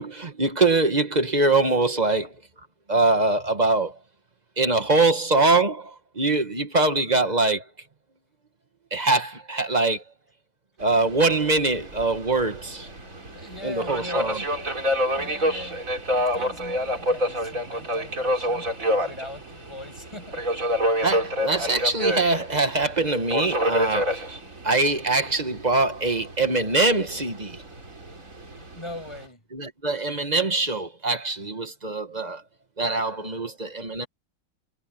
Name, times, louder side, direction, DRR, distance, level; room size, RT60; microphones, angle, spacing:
voice 1, 0.0-2.3 2.9-4.0 4.6-7.6 8.9-10.0 10.8-12.9 13.6-14.4 21.0-24.3 24.6-27.6 29.5-32.4 32.8-34.1, right 3 dB, 25° right, 1.3 m, -23 dB
Subway metro underground, 10.8-29.2, equal, 40° right, 4.5 m, -28 dB
voice 2, 13.3-20.4 28.5-29.4, left 1 dB, 15° left, 6.0 m, -41 dB
omnidirectional pair, 2.1 m